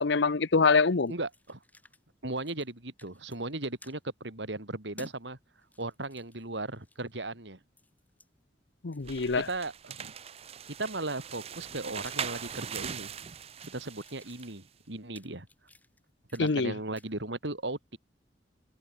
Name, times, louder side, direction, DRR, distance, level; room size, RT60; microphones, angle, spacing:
voice 1, 0.0-1.1 8.8-9.5 16.4-16.7, left 4 dB, 75° left, 0.8 m, -25 dB
sound 1, 1.0-2.0 2.3-2.7 3.0-4.0 5.0-5.2 5.6-7.2 7.8-8.3 8.9-10.3 10.9-13.1 13.4-16.7 16.9-17.1, left 1 dB, 10° left, 4.0 m, -57 dB
voice 2, 1.1-1.6 2.2-5.4 5.8-7.6 9.3-10.1 10.8-13.1 13.7-15.5 16.3-18.0, right 2 dB, 80° right, 3.6 m, -36 dB
sound 2, 9.0-14.6, right 7 dB, 35° right, 0.5 m, -41 dB
head